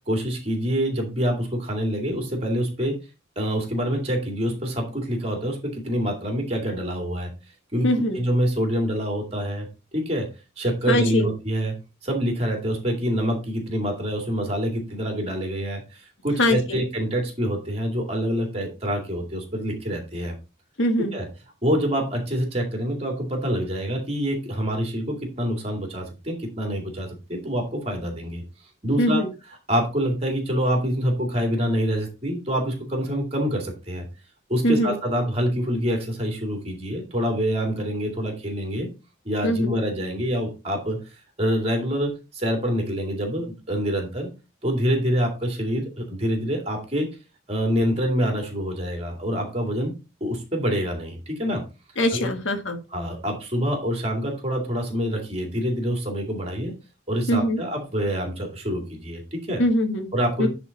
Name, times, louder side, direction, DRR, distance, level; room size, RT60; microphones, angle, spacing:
voice 1, 0.0-3.0 3.4-7.3 7.7-7.9 8.1-10.3 10.6-11.7 12.0-20.3 21.1-21.3 21.6-28.4 28.8-29.2 29.7-34.1 34.5-38.9 39.2-41.0 41.4-44.3 44.6-47.1 47.5-49.9 50.2-51.6 52.1-52.3 52.9-56.7 57.1-59.6 60.1-60.5, equal, 30° right, 2 dB, 2.5 m, -26 dB
voice 2, 7.8-8.2 10.9-11.3 16.4-16.8 20.8-21.2 29.0-29.3 34.6-35.0 39.4-39.8 52.0-52.8 57.3-57.6 59.6-60.1 60.4-60.5, left 1 dB, 80° left, 6 dB, 1.5 m, -22 dB
9.8 x 4.2 x 4.1 m, 0.28 s
head